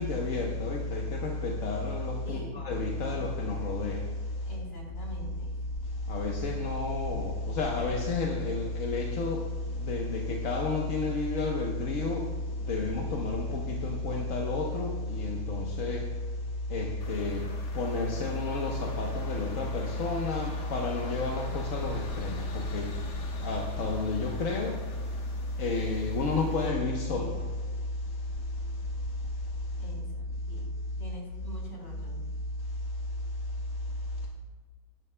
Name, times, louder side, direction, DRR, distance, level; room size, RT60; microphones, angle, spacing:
voice 1, 0.0-4.0 6.1-9.4 9.8-12.3 12.7-16.1 16.7-17.4 17.7-22.9 23.4-24.8 25.6-27.3, left 3 dB, 55° left, 1.2 m, -30 dB
voice 2, 2.2-2.6 3.0-3.2 4.4-5.5 29.8-32.2, equal, 40° left, 4.1 m, -45 dB
sound 1, 17.0-26.7, left 3 dB, 70° left, 1.8 m, -46 dB
16.5 x 11.0 x 2.2 m
omnidirectional pair, 1.9 m